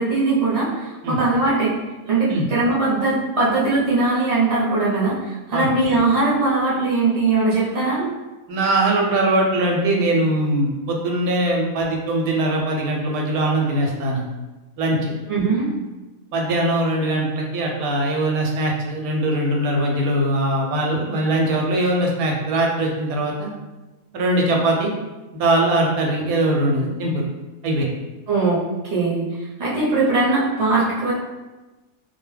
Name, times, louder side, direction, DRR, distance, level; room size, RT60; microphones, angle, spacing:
voice 1, 0.0-1.7 2.1-8.1 15.3-15.7 28.3-28.6 28.8-29.2 29.6-31.1, right 3 dB, 30° right, -7 dB, 0.7 m, -20 dB
voice 2, 8.5-14.2 14.8-15.1 16.3-23.5 24.1-24.9 25.3-27.2 27.6-27.9, right 1 dB, 90° right, 0 dB, 1.1 m, -21 dB
2.6 x 2.1 x 3.2 m, 1.2 s
omnidirectional pair, 1.5 m